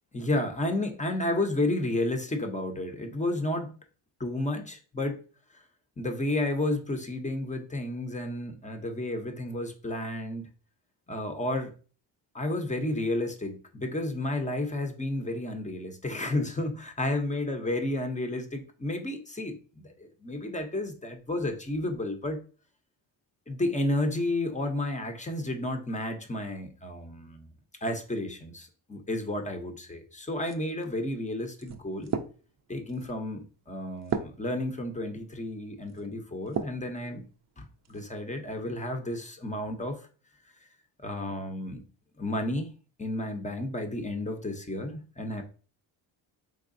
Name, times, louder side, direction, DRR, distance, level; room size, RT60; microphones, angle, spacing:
voice 1, 0.1-3.7 4.2-5.2 6.0-10.5 11.1-11.7 12.3-22.4 23.5-27.5 27.8-32.1 32.7-37.2 37.6-40.0 41.0-41.8 42.2-42.7 43.0-45.4, left 1 dB, 15° left, 0.6 m, -32 dB
sound 1, 30.4-36.9 37.4-38.1, right 6 dB, 35° right, 0.5 m, -38 dB
3.8 x 3.3 x 2.5 m
cardioid pair, 80°, 47 cm